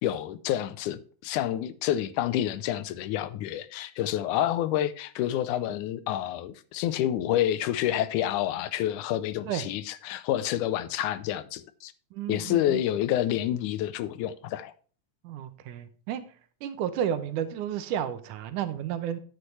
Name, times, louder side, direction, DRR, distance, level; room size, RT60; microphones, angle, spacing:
voice 1, 0.0-11.9 12.3-14.7, left 12 dB, 85° left, 2.1 m, -28 dB
voice 2, 12.1-12.8 15.2-16.2 16.6-19.2, right 9 dB, 80° right, 2.4 m, -32 dB
9.5 x 8.7 x 3.2 m
omnidirectional pair, 3.6 m